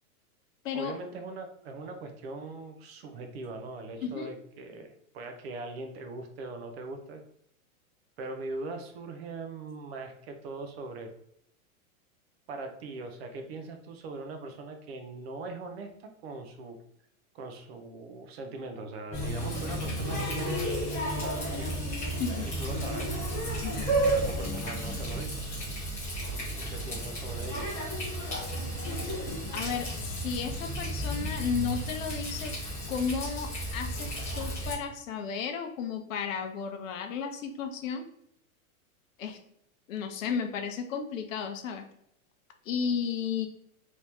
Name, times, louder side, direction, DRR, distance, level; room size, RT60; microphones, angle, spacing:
voice 1, 0.7-4.9 5.1-7.2 8.2-11.1 12.5-16.8 17.3-20.6 21.2-21.8 22.6-23.1 24.1-25.4 26.7-27.7, right 3 dB, 45° right, 5 dB, 0.5 m, -40 dB
Water tap faucet, 19.1-34.7, right 1 dB, 5° left, 0.4 m, -32 dB
voice 2, 22.2-22.5 23.6-24.0 29.5-32.6 32.9-38.0 39.2-39.4 39.9-41.9 42.7-43.5, left 6 dB, 60° left, 6 dB, 0.7 m, -33 dB
3.0 x 2.6 x 3.3 m, 0.74 s
supercardioid pair, 155°, 44 cm